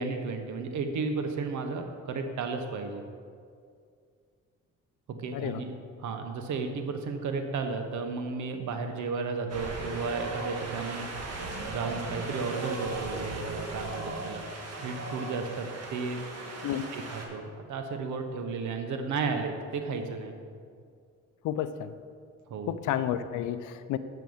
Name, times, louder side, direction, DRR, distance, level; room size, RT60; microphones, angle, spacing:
voice 1, 0.0-3.0 5.1-5.7 6.0-11.1 11.7-14.4 14.8-16.2 16.9-20.3 22.5-22.8, right 4 dB, 70° right, 5 dB, 1.1 m, -33 dB
Wind, 9.5-17.3, right 2 dB, 55° right, 1.6 m, -37 dB
voice 2, 21.4-21.9 22.7-24.0, left 11 dB, 80° left, 12 dB, 0.6 m, -31 dB
7.7 x 5.7 x 7.1 m, 2.2 s
cardioid pair, 90°, 30 cm